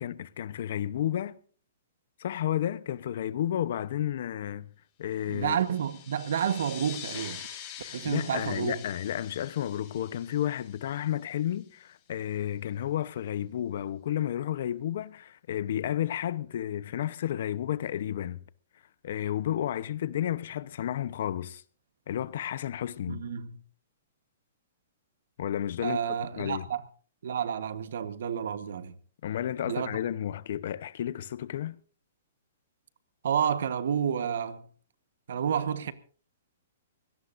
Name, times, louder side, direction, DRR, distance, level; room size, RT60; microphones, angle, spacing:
voice 1, 0.0-1.4 2.2-4.7 5.0-5.6 7.8-18.4 19.0-21.6 22.1-23.2 25.4-26.0 26.3-26.7 29.2-31.8, left 11 dB, 60° left, 0.9 m, -32 dB
sound 1, 5.3-11.6, left 9 dB, 30° left, 5.2 m, -45 dB
voice 2, 5.3-7.4 7.9-8.8 23.1-23.6 25.8-26.8 27.2-28.9 29.6-29.9 33.2-34.7 35.3-35.9, right 8 dB, 70° right, 1.3 m, -30 dB
24.5 x 17.5 x 2.6 m
hypercardioid pair, 150°, 0 cm